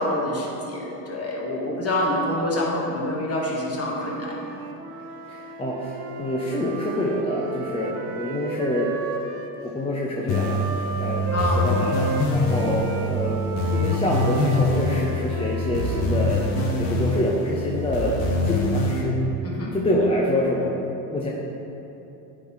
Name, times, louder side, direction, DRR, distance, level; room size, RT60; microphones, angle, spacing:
voice 1, 0.0-4.4 11.3-11.9 19.4-19.8, left 1 dB, 30° left, -3 dB, 1.4 m, -26 dB
Wind instrument woodwind instrument, 3.8-9.6 10.3-16.8, right 4 dB, 80° right, 0.7 m, -34 dB
voice 2, 5.3-8.9 9.6-10.6 11.0-11.3 11.5-13.4 13.7-16.4 16.8-19.2 19.7-20.8 21.1-21.3, left 1 dB, 10° left, -3 dB, 0.5 m, -26 dB
sound 1, 10.3-19.0, left 2 dB, 70° left, 1.1 m, -24 dB
9.0 x 4.0 x 3.1 m, 3.0 s
hypercardioid pair, 85°, 49 cm